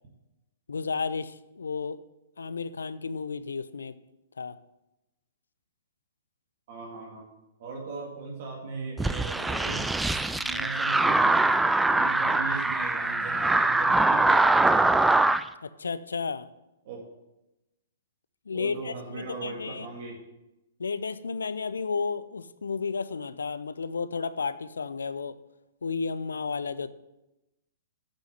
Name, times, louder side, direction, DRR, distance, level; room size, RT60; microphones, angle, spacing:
voice 1, 0.7-2.0 2.4-3.9 4.4-4.5 15.6-16.5 18.5-19.9 20.8-25.3 25.8-26.9, left 5 dB, 80° left, 15 dB, 0.6 m, -32 dB
voice 2, 6.7-7.2 7.6-9.9 10.4-11.7 12.0-14.5 16.8-17.0 18.5-20.2, right 4 dB, 55° right, -2 dB, 2.1 m, -38 dB
sound 1, 9.0-15.4, right 2 dB, 5° right, 0.4 m, -23 dB
8.4 x 6.4 x 7.9 m, 0.96 s
figure-of-eight pair, 120°, 0 cm